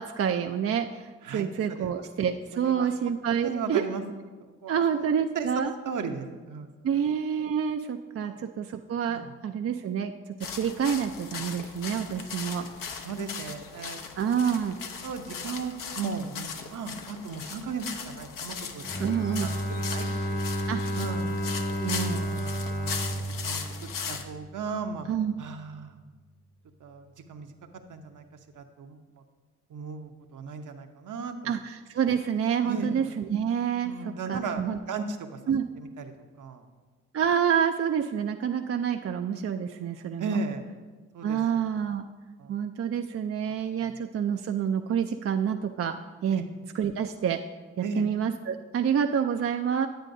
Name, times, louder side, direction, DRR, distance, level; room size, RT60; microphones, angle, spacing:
voice 1, 0.0-3.8 4.7-5.7 6.8-10.1 10.5-12.7 14.2-14.8 19.0-19.5 20.7-21.0 21.8-22.2 25.1-25.3 31.5-33.9 34.3-34.8 35.5-35.7 37.1-40.4 41.2-42.1 42.5-46.0 46.2-46.4 46.7-47.4 47.8-49.9, right 8 dB, 40° right, 6 dB, 0.4 m, -28 dB
voice 2, 1.2-2.0 2.5-3.1 3.4-4.0 4.4-5.1 5.3-7.0 8.2-8.5 9.1-9.3 13.0-14.1 15.0-18.8 19.4-20.4 20.9-21.4 22.1-25.1 25.4-26.1 26.8-27.5 27.9-28.3 28.5-29.2 29.7-31.5 32.6-33.0 33.8-35.4 36.0-36.7 40.2-40.7 41.1-41.6 42.4-42.6 43.8-44.0 46.3-46.5 47.8-48.1, right 4 dB, 60° right, 6 dB, 0.8 m, -36 dB
sound 1, 10.4-24.2, left 6 dB, 65° left, 0.8 m, -38 dB
Bowed string instrument, 18.8-24.8, equal, 25° left, 0.9 m, -32 dB
9.1 x 8.9 x 2.6 m, 1.3 s
supercardioid pair, 40°, 35 cm